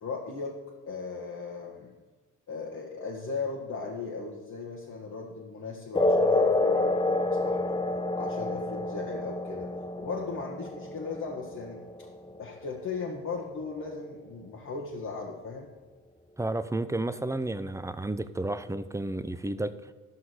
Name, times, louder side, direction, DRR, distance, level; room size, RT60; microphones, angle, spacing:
voice 1, 0.0-0.6 0.9-1.9 2.5-7.8 8.2-12.1 12.4-15.7, left 4 dB, 55° left, -3 dB, 1.8 m, -37 dB
sound 1, 6.0-13.0, left 2 dB, 15° left, 0.9 m, -28 dB
voice 2, 16.4-19.7, right 2 dB, 10° right, 12 dB, 0.6 m, -31 dB
13.0 x 5.8 x 6.4 m, 1.2 s
supercardioid pair, 70°, 34 cm